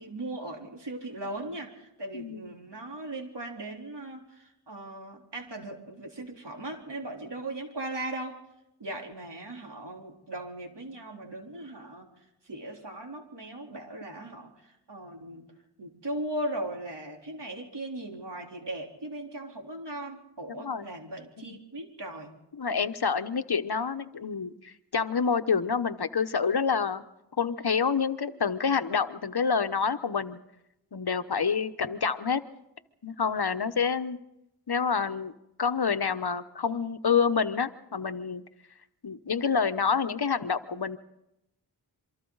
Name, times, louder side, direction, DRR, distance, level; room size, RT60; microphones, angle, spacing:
voice 1, 0.0-8.4 8.8-12.1 12.4-15.5 15.8-22.3, right 1 dB, 75° right, 0 dB, 3.8 m, -38 dB
voice 2, 2.1-2.5 20.6-20.9 21.4-21.5 22.6-27.0 27.4-30.4 30.9-32.4 33.0-34.2 34.7-35.3 35.6-38.4 39.0-41.0, left 6 dB, 65° left, 11 dB, 1.1 m, -28 dB
27.0 x 24.5 x 4.0 m, 0.87 s
wide cardioid pair, 70°, 42 cm